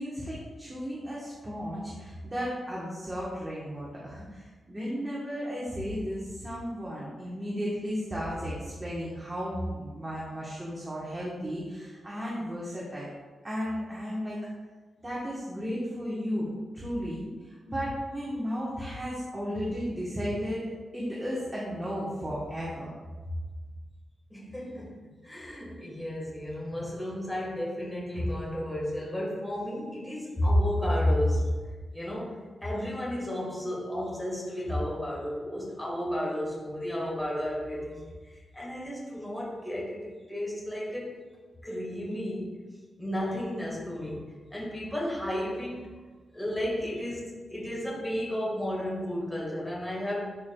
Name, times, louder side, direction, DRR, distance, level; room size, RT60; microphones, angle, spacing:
voice 1, 0.0-13.1 13.4-14.4 15.0-20.6 20.9-22.9, equal, 15° right, -7 dB, 1.1 m, -34 dB
voice 2, 24.3-31.6 31.9-41.2 41.6-42.6 43.0-46.0 46.3-50.4, left 1 dB, 5° left, -5 dB, 1.6 m, -32 dB
11.0 x 4.6 x 2.3 m, 1.4 s
wide cardioid pair, 175°, 0 cm